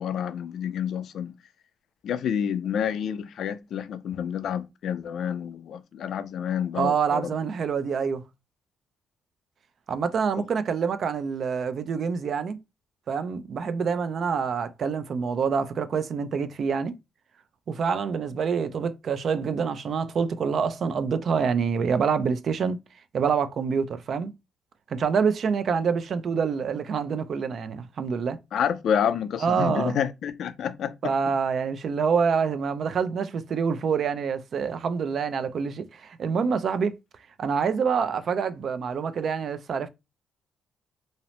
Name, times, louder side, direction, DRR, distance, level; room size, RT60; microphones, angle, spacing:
voice 1, 0.0-1.3 2.0-7.3 10.4-10.5 28.5-31.1, left 8 dB, 70° left, 0.3 m, -29 dB
voice 2, 6.7-8.2 9.9-12.6 13.1-16.9 17.7-22.8 23.1-24.3 24.9-28.4 29.4-30.0 31.0-36.9 37.4-39.9, right 6 dB, 55° right, 0.3 m, -26 dB
2.6 x 2.0 x 3.0 m
cardioid pair, 90°, 0 cm